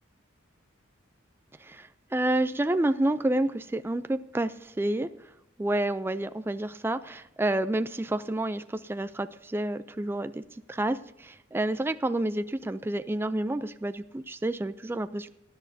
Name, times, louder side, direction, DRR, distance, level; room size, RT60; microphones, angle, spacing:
voice 1, 1.6-5.1 5.6-10.4 10.7-15.3, right 1 dB, 10° right, 11 dB, 0.3 m, -29 dB
19.0 x 10.5 x 2.7 m, 0.87 s
head